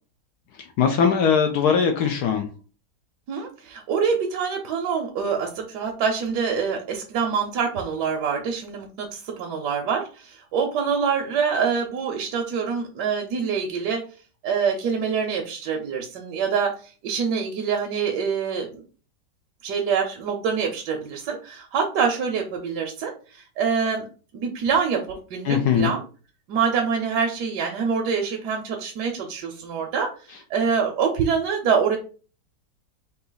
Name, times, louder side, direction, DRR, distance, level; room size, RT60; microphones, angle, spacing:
voice 1, 0.8-2.5 25.5-25.9, left 7 dB, 75° left, 5 dB, 1.1 m, -20 dB
voice 2, 3.3-14.0 14.4-18.8 19.6-24.1 24.3-26.0 26.5-32.0, right 6 dB, 75° right, 1 dB, 1.3 m, -25 dB
4.1 x 2.9 x 3.8 m, 0.37 s
omnidirectional pair, 1.8 m